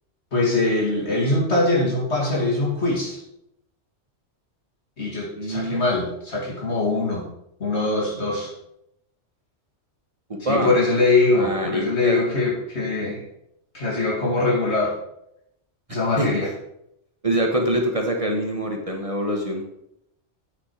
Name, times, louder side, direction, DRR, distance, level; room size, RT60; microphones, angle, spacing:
voice 1, 0.3-3.2 5.0-7.3 7.6-8.5 10.4-13.2 13.7-14.9 15.9-16.5, left 2 dB, 70° left, -2 dB, 2.6 m, -22 dB
voice 2, 5.4-5.9 10.3-10.7 11.3-12.2 16.2-16.3 17.2-19.6, right 1 dB, 30° right, 1 dB, 1.2 m, -24 dB
8.4 x 6.1 x 4.8 m, 0.79 s
omnidirectional pair, 1.2 m